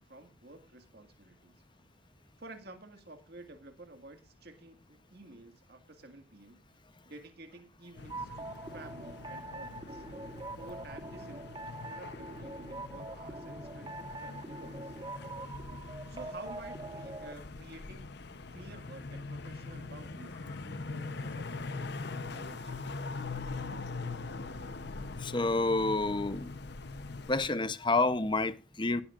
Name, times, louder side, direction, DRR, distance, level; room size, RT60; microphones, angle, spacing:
voice 1, 0.0-1.5 2.4-6.6 7.0-10.0 10.6-14.9 16.1-18.1 18.5-23.2, right 2 dB, 50° right, 1.9 m, -52 dB
sound 1, 8.0-27.5, left 3 dB, 55° left, 0.8 m, -42 dB
sound 2, 8.1-17.3, right 2 dB, 20° right, 0.7 m, -44 dB
voice 2, 25.2-26.5 27.3-29.0, left 2 dB, 25° left, 0.8 m, -29 dB
17.5 x 12.5 x 2.5 m
head